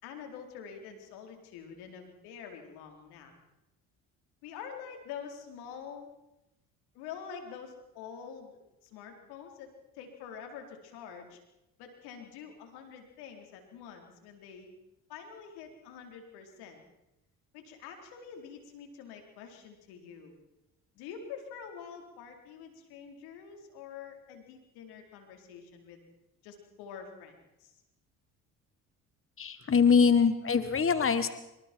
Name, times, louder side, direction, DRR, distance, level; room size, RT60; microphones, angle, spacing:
voice 1, 0.0-3.3 4.4-6.1 6.9-11.4 11.8-14.7 15.1-16.8 17.5-20.3 21.0-26.0 26.4-27.3 27.6-27.7, left 7 dB, 85° left, 4 dB, 4.3 m, -46 dB
voice 2, 29.4-31.3, left 6 dB, 35° left, 11 dB, 1.7 m, -23 dB
26.0 x 25.0 x 4.6 m, 0.92 s
supercardioid pair, 65°, 38 cm